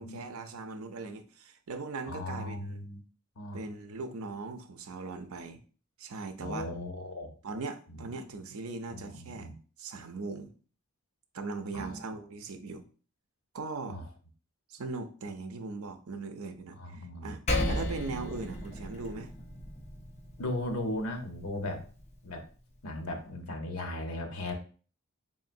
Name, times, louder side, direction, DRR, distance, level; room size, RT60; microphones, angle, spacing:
voice 1, 0.0-2.9 3.5-5.6 6.0-6.7 7.2-10.5 11.3-12.9 13.5-14.0 14.7-19.3, right 3 dB, 80° right, 0.5 m, -40 dB
voice 2, 2.1-3.0 3.4-3.6 6.4-7.3 7.9-8.1 8.9-9.5 11.7-12.0 13.9-14.0 16.8-17.3 18.2-18.3 20.4-21.8 22.2-22.4 22.8-24.5, left 1 dB, 85° left, 0.9 m, -37 dB
Percussion, 17.5-22.3, left 1 dB, 30° left, 0.7 m, -35 dB
3.7 x 3.7 x 2.6 m
head